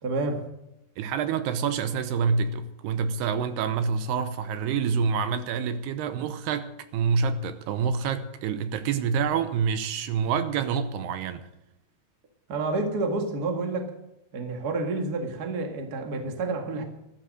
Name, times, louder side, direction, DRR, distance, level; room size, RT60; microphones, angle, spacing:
voice 1, 0.0-0.4 12.5-13.9 14.3-16.8, right 3 dB, 45° right, 1.2 m, -29 dB
voice 2, 1.0-11.5, right 6 dB, 80° right, 2.7 m, -27 dB
14.0 x 13.5 x 6.5 m
omnidirectional pair, 4.9 m